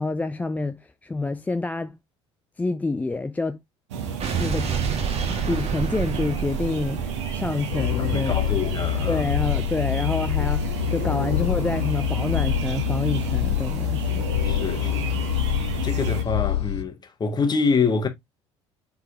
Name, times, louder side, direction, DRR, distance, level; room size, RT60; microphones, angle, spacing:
voice 1, 0.0-2.0 2.6-3.6 4.4-4.7 5.5-8.3 9.1-14.2, left 3 dB, 10° left, 0.3 m, -27 dB
sound 1, 3.9-16.2, right 6 dB, 75° right, 0.9 m, -32 dB
Explosion, 4.2-8.5, right 6 dB, 45° right, 1.3 m, -29 dB
sound 2, 7.7-16.8, left 15 dB, 75° left, 0.5 m, -26 dB
voice 2, 8.0-9.3 14.4-18.1, left 4 dB, 30° left, 1.1 m, -26 dB
4.5 x 4.0 x 2.8 m
figure-of-eight pair, 60°, 15 cm